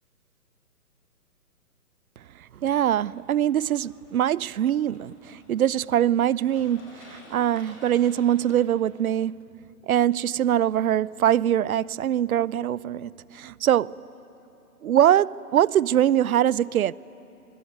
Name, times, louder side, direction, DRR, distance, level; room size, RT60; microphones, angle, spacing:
sound 1, 2.5-8.6, left 2 dB, 50° left, 6.2 m, -53 dB
voice 1, 2.5-9.4 9.8-14.0 14.8-16.9, right 11 dB, 65° right, 0.6 m, -23 dB
24.0 x 23.0 x 9.3 m
hypercardioid pair, 170°, 47 cm